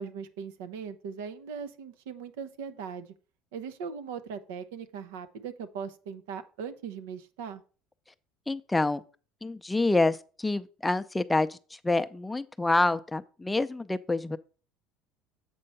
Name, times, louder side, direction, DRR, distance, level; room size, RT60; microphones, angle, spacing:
voice 1, 0.0-3.1 3.5-7.6, right 6 dB, 85° right, 0.8 m, -39 dB
voice 2, 8.5-9.0 9.4-11.6 11.8-14.4, left 2 dB, 10° left, 0.5 m, -27 dB
7.7 x 4.4 x 5.3 m
supercardioid pair, 90°, 0 cm